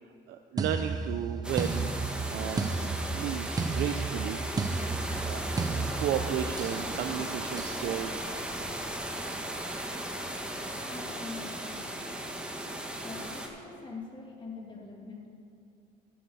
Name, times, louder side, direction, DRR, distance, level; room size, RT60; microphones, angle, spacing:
voice 1, 0.3-1.9 2.3-4.4 5.2-5.4 6.0-8.3, right 10 dB, 70° right, 7 dB, 0.5 m, -34 dB
sound 1, 0.6-6.9 7.6-7.9, right 4 dB, 20° right, 0.6 m, -33 dB
sound 2, 1.4-13.5, right 1 dB, 5° right, 1.2 m, -36 dB
voice 2, 10.8-11.8 13.0-15.3, left 4 dB, 30° left, -1 dB, 2.1 m, -43 dB
11.5 x 7.2 x 6.2 m, 2.5 s
cardioid pair, 110°, 17 cm